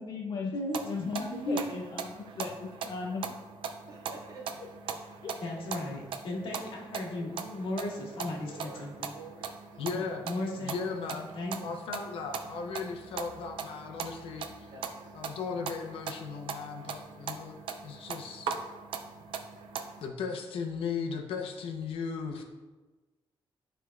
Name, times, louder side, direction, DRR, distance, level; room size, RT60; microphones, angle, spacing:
voice 1, 0.0-0.5 0.8-3.3 5.2-5.3 7.2-7.3, left 4 dB, 45° left, 1 dB, 0.5 m, -37 dB
voice 2, 0.5-1.7 5.4-9.1 9.9-10.7 11.1-11.8, left 1 dB, 70° left, -2 dB, 1.6 m, -36 dB
sound 1, 0.7-20.1, right 6 dB, 70° right, 0.6 m, -41 dB
voice 3, 3.9-4.4 8.5-8.8 9.1-10.1 14.7-14.9, right 3 dB, 45° right, -5 dB, 1.9 m, -48 dB
voice 4, 9.8-10.3 10.6-11.2 11.6-14.7 15.1-18.5 20.0-22.4, left 5 dB, 85° left, 3 dB, 0.8 m, -37 dB
11.5 x 4.6 x 2.4 m, 1.2 s
wide cardioid pair, 170°, 9 cm